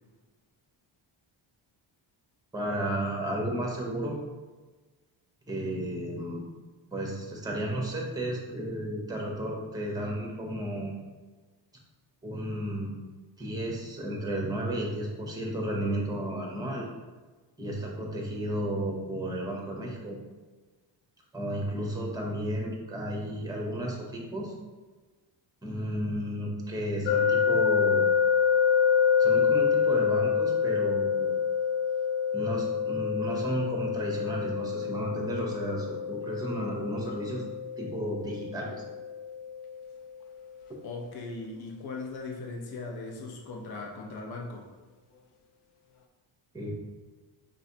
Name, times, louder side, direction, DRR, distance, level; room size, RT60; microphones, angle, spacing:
voice 1, 2.5-4.2 5.5-6.4 6.9-10.9 12.2-13.0 13.4-16.9 17.6-20.2 21.3-24.5 25.6-28.1 29.2-31.3 32.3-37.4 37.8-38.8 46.5-46.7, right 1 dB, 10° right, -1 dB, 0.9 m, -33 dB
sound 1, 27.1-40.0, left 7 dB, 90° left, 0.6 m, -27 dB
voice 2, 40.8-44.7, left 3 dB, 50° left, 0 dB, 0.8 m, -39 dB
5.2 x 3.1 x 2.8 m, 1.3 s
cardioid pair, 130°, 48 cm